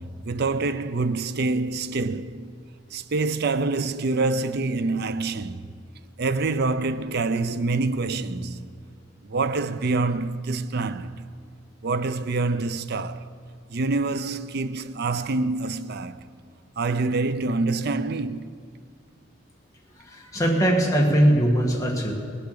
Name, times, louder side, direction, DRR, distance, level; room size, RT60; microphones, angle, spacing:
voice 1, 0.0-2.5 2.9-5.7 6.2-8.7 9.3-11.2 11.8-13.3 13.7-16.2 16.8-18.5, right 3 dB, 55° right, 0.5 m, -26 dB
voice 2, 20.1-22.1, right 1 dB, 15° left, 1.9 m, -20 dB
20.0 x 8.1 x 6.8 m
head